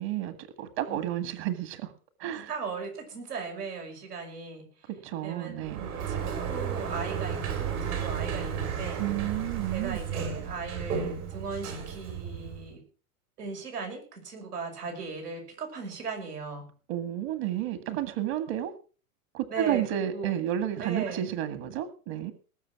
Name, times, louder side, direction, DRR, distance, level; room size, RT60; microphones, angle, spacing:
voice 1, 0.0-1.9 2.2-2.5 5.0-5.9 9.0-10.0 16.9-18.7 19.3-22.3, right 12 dB, 50° right, 10 dB, 1.9 m, -31 dB
voice 2, 2.4-4.9 5.2-5.7 6.1-9.0 9.7-12.8 13.4-16.7 19.5-20.4 20.8-21.3, right 4 dB, 90° right, 2 dB, 5.8 m, -37 dB
Sliding door, 5.6-12.7, right 7 dB, 70° right, 6.7 m, -33 dB
19.5 x 7.2 x 6.0 m, 0.38 s
hypercardioid pair, 130°, 45 cm